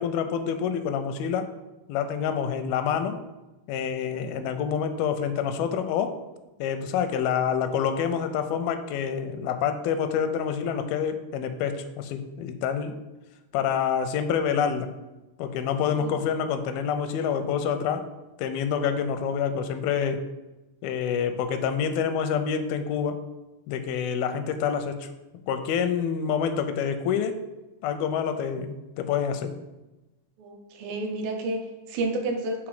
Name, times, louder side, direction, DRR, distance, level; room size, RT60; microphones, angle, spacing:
voice 1, 0.0-1.5 1.9-3.2 3.7-6.2 6.6-13.0 13.5-14.9 15.4-18.1 18.4-20.2 20.8-23.2 23.7-25.1 25.5-27.4 27.8-29.5, left 7 dB, 85° left, 9 dB, 2.4 m, -27 dB
voice 2, 30.4-32.7, right 2 dB, 80° right, 3 dB, 2.4 m, -30 dB
6.1 x 3.6 x 4.8 m, 1.0 s
omnidirectional pair, 4.2 m